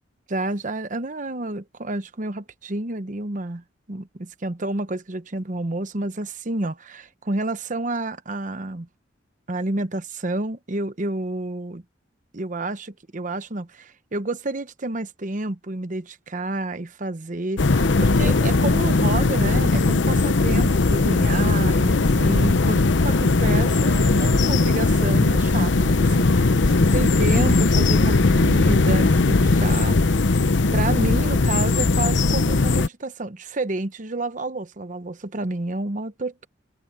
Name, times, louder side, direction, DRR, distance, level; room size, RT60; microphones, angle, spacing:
voice 1, 0.3-8.9 9.5-11.8 12.3-30.0 30.7-36.5, right 2 dB, 45° right, 1.0 m, -30 dB
sound 1, 17.6-32.9, left 3 dB, 75° left, 0.8 m, -19 dB
head